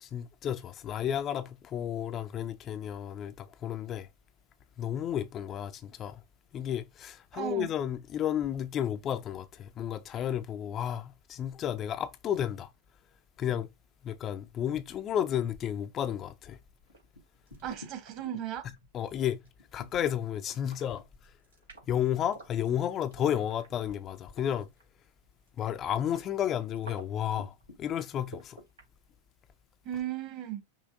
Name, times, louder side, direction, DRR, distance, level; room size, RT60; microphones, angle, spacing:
voice 1, 0.0-4.1 4.8-6.2 6.5-12.7 13.4-13.7 14.0-16.6 18.9-19.4 19.7-21.0 21.9-24.7 25.6-28.6, left 10 dB, 30° left, 0.4 m, -32 dB
voice 2, 7.3-7.7 17.6-18.7 29.8-30.6, right 11 dB, 40° right, 1.2 m, -36 dB
sound 1, 16.9-25.1 25.4-28.8, equal, 75° right, 2.7 m, -50 dB
5.5 x 2.7 x 2.5 m
figure-of-eight pair, 90°, 0 cm